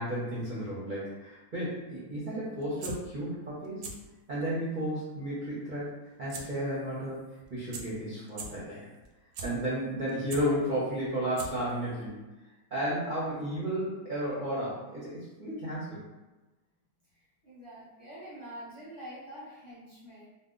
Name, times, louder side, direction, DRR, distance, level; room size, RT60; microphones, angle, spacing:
voice 1, 0.0-3.9 4.3-5.9 6.2-7.2 7.5-8.9 9.4-12.2 12.7-16.0, equal, 45° right, -8 dB, 0.6 m, -33 dB
sound 1, 2.6-2.9 3.6-3.9 4.3-4.4 6.3-6.4 6.8-6.9 7.4-7.5 7.7-7.8 8.3-8.5 9.0-9.5 10.0-10.4 11.0-11.1 11.4-11.7 12.0-12.1, right 4 dB, 70° right, 1.0 m, -39 dB
voice 2, 17.4-20.3, equal, 30° left, -9 dB, 0.5 m, -46 dB
2.7 x 2.2 x 3.7 m, 1.1 s
omnidirectional pair, 1.7 m